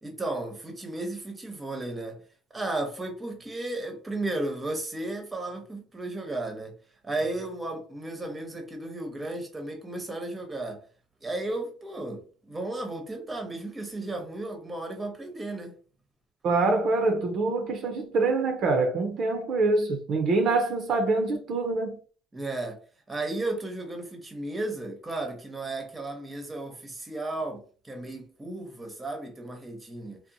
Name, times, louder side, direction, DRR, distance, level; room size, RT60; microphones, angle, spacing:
voice 1, 0.0-2.2 2.5-6.7 7.0-10.8 11.2-15.7 22.3-22.8 23.1-30.2, right 2 dB, 15° right, 0.8 m, -34 dB
voice 2, 16.4-22.0, right 3 dB, 55° right, 0.6 m, -25 dB
2.8 x 2.0 x 2.6 m
cardioid pair, 105°, 0 cm